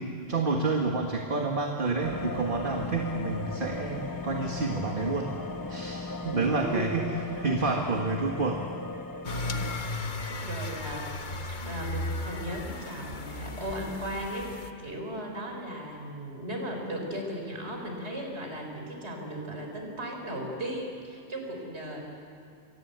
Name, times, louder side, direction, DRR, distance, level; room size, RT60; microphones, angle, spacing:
voice 1, 0.0-5.3 5.7-7.1 7.4-8.6, right 3 dB, 45° right, 1 dB, 1.9 m, -29 dB
sound 1, 2.0-9.8, left 3 dB, 20° left, 0.9 m, -37 dB
voice 2, 6.3-7.0 9.4-9.6 10.3-11.1 11.4-22.0, right 1 dB, 60° right, 2 dB, 4.6 m, -36 dB
sound 2, 9.2-14.7, left 2 dB, 40° left, 1.3 m, -35 dB
29.0 x 23.5 x 8.2 m, 2.4 s
omnidirectional pair, 1.3 m